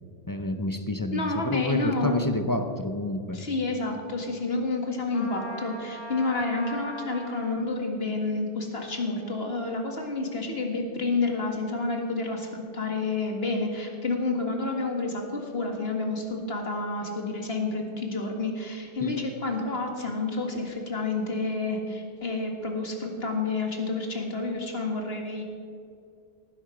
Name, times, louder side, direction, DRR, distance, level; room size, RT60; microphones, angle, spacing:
voice 1, 0.3-3.4 19.0-19.2, left 2 dB, 20° left, 7 dB, 0.7 m, -29 dB
voice 2, 1.1-2.3 3.3-25.4, left 3 dB, 60° left, 2 dB, 2.1 m, -29 dB
Trumpet, 5.1-7.6, equal, 45° left, 1.9 m, -39 dB
18.0 x 10.5 x 5.1 m, 2.4 s
omnidirectional pair, 1.1 m